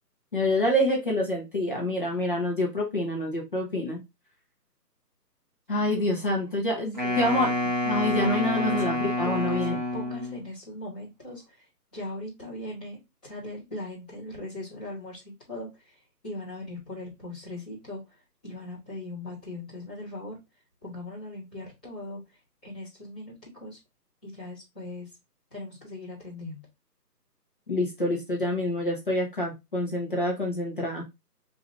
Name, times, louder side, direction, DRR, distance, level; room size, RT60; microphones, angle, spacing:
voice 1, 0.3-4.0 5.7-7.6 7.8-9.8 27.7-31.0, left 1 dB, 30° left, -1 dB, 1.0 m, -27 dB
voice 2, 6.7-7.5 8.5-8.8 9.2-11.7 11.9-15.2 15.5-16.0 16.2-18.0 18.4-20.4 20.8-22.2 22.6-23.8 24.2-25.1 25.5-26.6, left 1 dB, 5° left, -14 dB, 1.0 m, -39 dB
Wind instrument woodwind instrument, 6.9-10.4, left 1 dB, 30° right, 0.7 m, -28 dB
4.7 x 2.7 x 3.2 m, 0.22 s
figure-of-eight pair, 150°, 49 cm